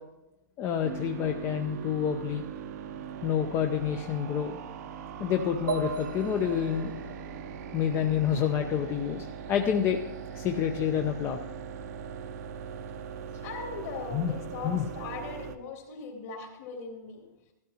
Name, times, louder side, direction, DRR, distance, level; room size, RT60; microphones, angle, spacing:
voice 1, 0.6-2.4 3.2-4.5 5.2-6.9 7.7-10.0 10.3-11.4 14.1-14.3 14.6-14.8, left 8 dB, 25° left, 5 dB, 0.6 m, -28 dB
sound 1, 0.8-15.6, right 7 dB, 55° right, 0.7 m, -41 dB
sound 2, 5.7-9.3, right 4 dB, 85° right, 1.5 m, -38 dB
voice 2, 13.4-17.2, left 4 dB, 50° left, 1 dB, 2.8 m, -39 dB
13.0 x 13.0 x 2.9 m, 0.97 s
hypercardioid pair, 145°, 10 cm